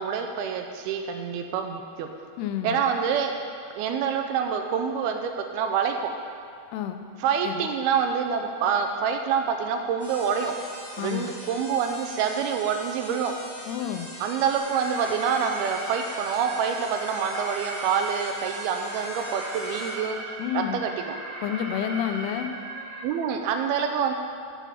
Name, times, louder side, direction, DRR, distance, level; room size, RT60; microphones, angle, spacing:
voice 1, 0.0-2.1 2.6-3.3 3.7-6.1 7.2-10.5 11.0-13.3 14.2-21.2 23.0-24.1, right 7 dB, 80° right, 5 dB, 2.4 m, -27 dB
voice 2, 2.4-2.8 6.7-7.0 7.4-7.7 11.0-11.4 13.7-14.1 20.4-20.8 21.4-22.5, left 10 dB, 90° left, 7 dB, 2.6 m, -29 dB
sound 1, 10.0-19.9, equal, 20° left, 2.4 m, -42 dB
Alarm, 14.6-23.0, right 2 dB, 50° right, 2.3 m, -37 dB
8.9 x 7.1 x 5.8 m, 2.4 s
omnidirectional pair, 4.6 m